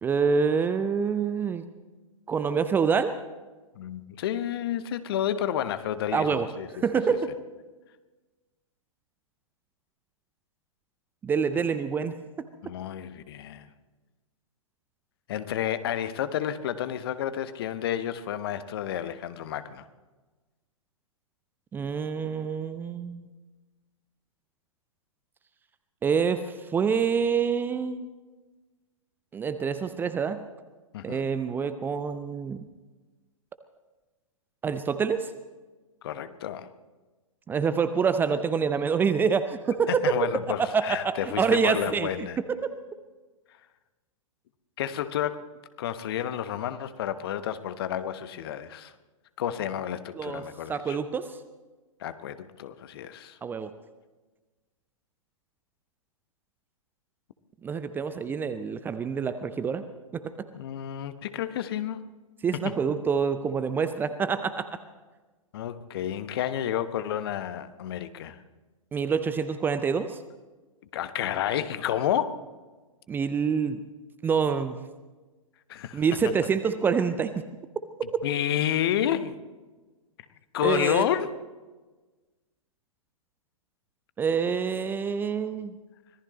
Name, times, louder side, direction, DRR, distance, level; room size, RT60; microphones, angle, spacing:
voice 1, 0.0-1.6 2.3-3.1 6.1-6.5 6.8-7.3 11.2-12.1 21.7-23.3 26.0-28.1 29.3-30.4 31.0-32.6 34.6-35.3 37.5-40.0 40.6-42.8 50.2-50.4 50.7-51.3 53.4-53.7 57.6-59.8 60.1-60.5 62.4-64.7 68.9-70.2 73.1-73.8 74.2-74.9 75.9-77.5 78.0-78.1 80.6-81.1 84.2-85.7, right 6 dB, 10° right, 11 dB, 0.6 m, -26 dB
voice 2, 3.8-6.7 12.6-13.7 15.3-19.8 30.9-31.2 36.0-36.7 39.9-42.4 44.8-45.4 45.8-48.9 49.4-51.0 52.0-53.4 60.5-62.1 65.5-68.4 70.9-72.4 75.7-76.0 78.2-79.4 80.5-81.3, left 10 dB, 45° left, 12 dB, 1.0 m, -30 dB
25.0 x 18.5 x 3.1 m, 1.2 s
figure-of-eight pair, 110°, 17 cm